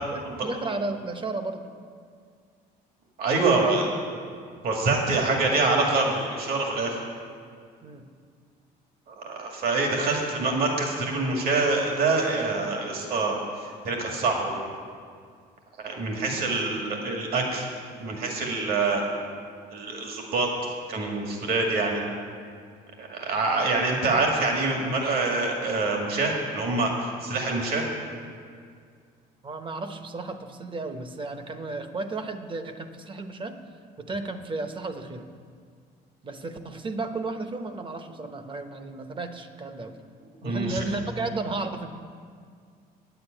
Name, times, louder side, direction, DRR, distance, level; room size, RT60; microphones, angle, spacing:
voice 1, 0.1-1.6 7.8-8.1 29.4-33.5 34.0-35.3 36.2-39.9 40.4-41.9, right 3 dB, 30° right, 8 dB, 1.0 m, -33 dB
voice 2, 3.2-3.9 4.6-7.0 9.1-14.6 15.8-17.7 18.0-19.0 19.7-20.5 20.9-22.0 23.0-26.9 27.2-27.8 40.4-40.8, right 3 dB, 65° right, 0 dB, 2.3 m, -25 dB
9.3 x 8.1 x 9.0 m, 2.1 s
cardioid pair, 110°, 17 cm